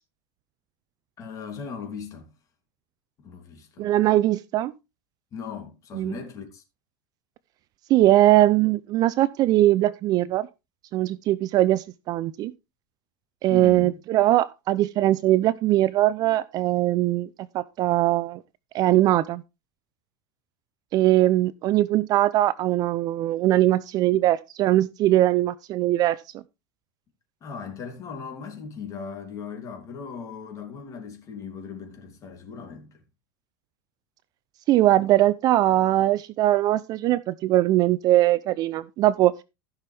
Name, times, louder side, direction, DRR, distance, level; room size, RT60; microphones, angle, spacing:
voice 1, 1.2-2.3 3.2-3.9 5.3-6.6 13.5-13.9 27.4-33.0, left 6 dB, 30° left, 2.8 m, -38 dB
voice 2, 3.8-4.7 5.9-6.1 7.9-10.5 10.9-12.5 13.4-17.3 17.5-18.4 18.7-19.4 20.9-26.2 34.7-39.3, right 15 dB, 35° right, 0.4 m, -21 dB
15.0 x 6.0 x 3.4 m
supercardioid pair, 145°, 11 cm